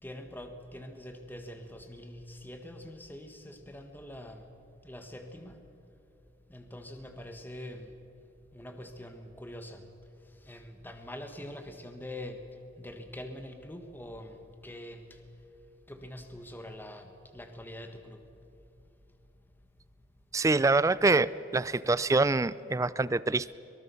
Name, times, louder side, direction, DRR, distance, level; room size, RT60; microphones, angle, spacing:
voice 1, 0.0-4.4 4.8-5.6 6.5-7.9 8.5-9.9 10.4-12.5 12.8-15.2 15.9-18.2, left 1 dB, 10° left, 6 dB, 1.4 m, -44 dB
voice 2, 20.3-23.5, right 3 dB, 15° right, 18 dB, 0.4 m, -25 dB
23.5 x 18.5 x 7.0 m, 2.7 s
head